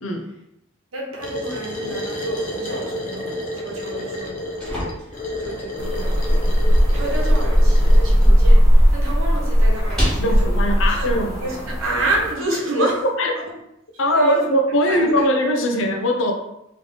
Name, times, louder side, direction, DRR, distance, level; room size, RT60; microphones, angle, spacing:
voice 1, 0.9-10.5 10.8-11.1 11.4-13.0 13.9-14.5 14.9-15.3, right 2 dB, 85° right, -1 dB, 1.0 m, -29 dB
sound 1, 1.2-8.3, left 1 dB, 40° left, 0.7 m, -31 dB
sound 2, 4.2-12.1, equal, 5° left, 1.5 m, -32 dB
sound 3, 5.8-12.3, equal, 15° right, 1.0 m, -17 dB
voice 2, 10.2-11.3 12.5-13.3 14.0-16.3, equal, 75° left, 3 dB, 0.7 m, -20 dB
3.3 x 3.2 x 3.9 m, 0.84 s
head